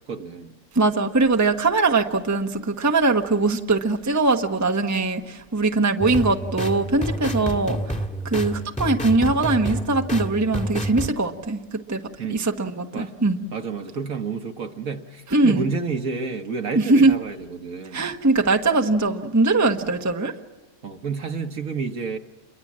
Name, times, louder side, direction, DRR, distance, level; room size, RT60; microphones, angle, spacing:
voice 1, 0.1-0.5 7.4-7.5 12.2-12.4 12.9-13.1 13.5-18.1 20.8-22.2, right 5 dB, 55° right, 1.8 m, -30 dB
voice 2, 0.7-7.8 8.2-12.0 12.3-13.4 15.3-15.6 16.7-17.1 17.9-20.3, right 3 dB, 10° right, 1.1 m, -21 dB
sound 1, 6.0-11.1, right 1 dB, 5° left, 1.6 m, -29 dB
28.5 x 23.0 x 7.5 m
omnidirectional pair, 1.8 m